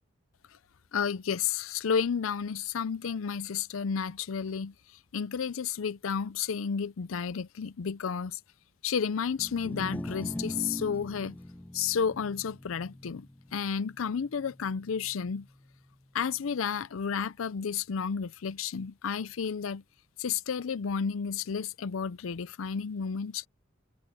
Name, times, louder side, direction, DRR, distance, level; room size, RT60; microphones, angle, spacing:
voice 1, 0.9-8.4 8.8-11.4 11.7-15.5 16.1-19.8 20.2-23.5, left 6 dB, 85° left, 0.5 m, -32 dB
sound 1, 9.3-15.6, left 1 dB, 10° left, 0.3 m, -41 dB
head